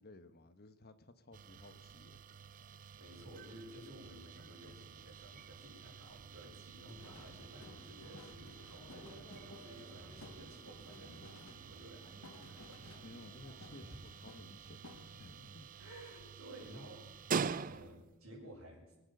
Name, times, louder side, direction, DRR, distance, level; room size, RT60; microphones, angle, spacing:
voice 1, 0.0-2.2 13.0-15.7, left 2 dB, 50° left, 11 dB, 1.1 m, -56 dB
sound 1, 1.3-18.2, right 5 dB, 40° right, 0.5 m, -46 dB
voice 2, 3.0-13.0 13.8-13.9 15.8-17.0 17.7-19.0, right 1 dB, 80° right, -2 dB, 6.4 m, -54 dB
sound 2, 6.9-13.3 13.6-15.5, left 2 dB, 75° left, 1.5 m, -57 dB
sound 3, 7.1-14.0, equal, 20° left, 3.9 m, -60 dB
23.5 x 9.1 x 6.6 m, 1.0 s
head